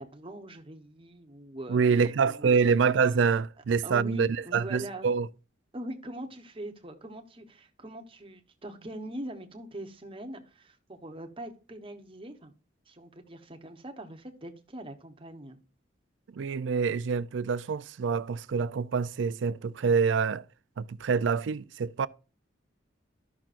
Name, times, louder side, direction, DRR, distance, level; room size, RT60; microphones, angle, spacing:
voice 1, 0.0-2.6 3.8-5.1 5.7-12.5 12.9-15.6, right 1 dB, 30° right, 1.0 m, -42 dB
voice 2, 1.7-5.3 16.3-20.5 20.8-22.1, right 5 dB, 70° right, 0.4 m, -26 dB
13.5 x 5.9 x 2.5 m
head